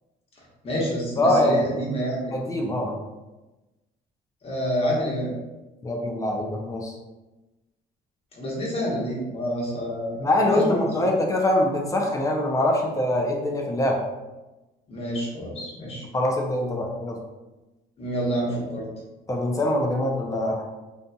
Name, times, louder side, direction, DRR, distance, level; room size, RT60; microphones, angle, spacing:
voice 1, 0.6-2.4 4.4-5.3 8.3-11.1 14.9-16.0 18.0-18.8, equal, 35° left, -4 dB, 1.0 m, -28 dB
voice 2, 1.2-1.7 2.3-2.9 5.8-6.9 10.2-14.0 16.1-17.2 19.3-20.6, left 1 dB, 20° left, 0 dB, 0.4 m, -23 dB
2.7 x 2.6 x 2.2 m, 1.1 s
cardioid pair, 110°, 17 cm